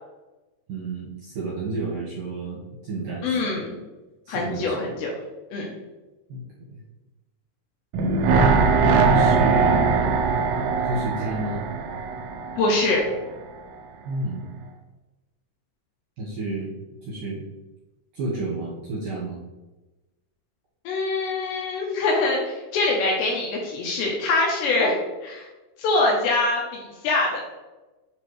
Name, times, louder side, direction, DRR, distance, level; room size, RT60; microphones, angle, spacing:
voice 1, 0.7-3.6 4.3-4.9 6.3-6.8 8.8-9.8 10.8-11.6 14.0-14.5 16.2-16.7 17.1-17.4 18.1-19.4, right 2 dB, 65° right, -7 dB, 2.2 m, -31 dB
voice 2, 3.2-3.8 4.3-5.1 5.5-5.7 12.6-13.0 20.9-25.0 25.2-25.5 25.8-27.4, left 2 dB, 75° left, -1 dB, 2.8 m, -24 dB
sound 1, 7.9-13.1 13.4-13.5, right 4 dB, 90° right, 3.3 m, -21 dB
10.0 x 3.7 x 3.2 m, 1.1 s
omnidirectional pair, 5.7 m